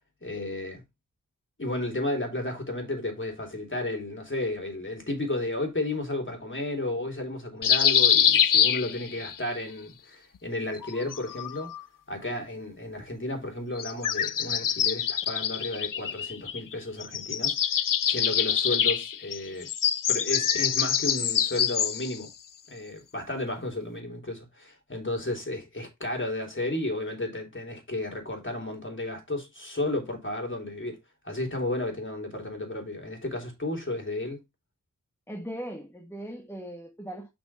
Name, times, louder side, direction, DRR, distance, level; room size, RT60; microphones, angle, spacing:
voice 1, 0.2-0.8 1.6-11.7 12.1-17.6 18.0-19.7 20.1-22.3 22.7-31.0 31.2-34.4, left 2 dB, 40° left, 3.5 m, -33 dB
sound 1, 7.6-9.4 10.8-11.8 13.8-16.7 17.0-22.2, left 8 dB, 85° left, 0.6 m, -25 dB
voice 2, 35.3-37.3, equal, 10° left, 1.4 m, -39 dB
6.1 x 6.1 x 4.3 m
wide cardioid pair, 60°, 31 cm